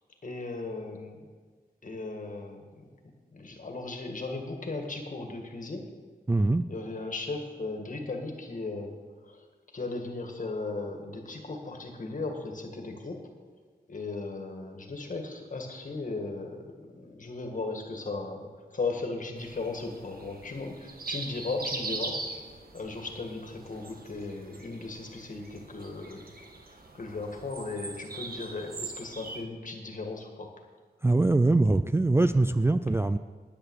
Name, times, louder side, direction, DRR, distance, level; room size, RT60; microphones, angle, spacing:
voice 1, 0.2-1.3 1.8-2.8 3.3-5.8 6.7-9.0 9.2-9.5 9.7-13.3 13.9-22.2 22.7-26.3 26.7-30.5, left 3 dB, 50° left, 3 dB, 1.8 m, -36 dB
voice 2, 6.3-6.6 31.0-33.2, right 2 dB, 15° right, 9 dB, 0.3 m, -23 dB
sound 1, 19.4-29.4, right 3 dB, 65° right, 1.6 m, -41 dB
10.0 x 9.8 x 6.3 m, 1.5 s
wide cardioid pair, 110°, 17 cm